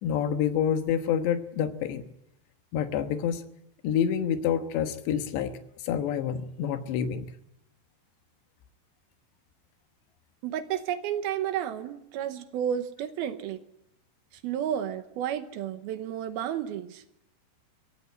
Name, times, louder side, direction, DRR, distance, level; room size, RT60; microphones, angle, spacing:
voice 1, 0.0-2.1 2.7-3.4 3.8-7.3, left 8 dB, 85° left, 3.5 m, -28 dB
voice 2, 10.4-13.6 14.4-17.0, right 10 dB, 75° right, 2.7 m, -31 dB
23.5 x 16.5 x 9.7 m
omnidirectional pair, 4.9 m